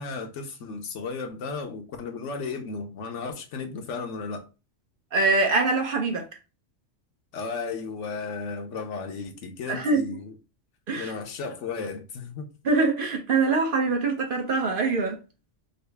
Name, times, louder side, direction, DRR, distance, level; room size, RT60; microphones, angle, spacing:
voice 1, 0.0-4.5 7.3-10.3 10.9-12.5, left 4 dB, 75° left, 1.1 m, -34 dB
voice 2, 5.1-6.3 9.7-10.1 10.9-11.1 12.6-15.2, right 3 dB, 55° right, 0.8 m, -24 dB
3.9 x 2.0 x 3.3 m
omnidirectional pair, 1.2 m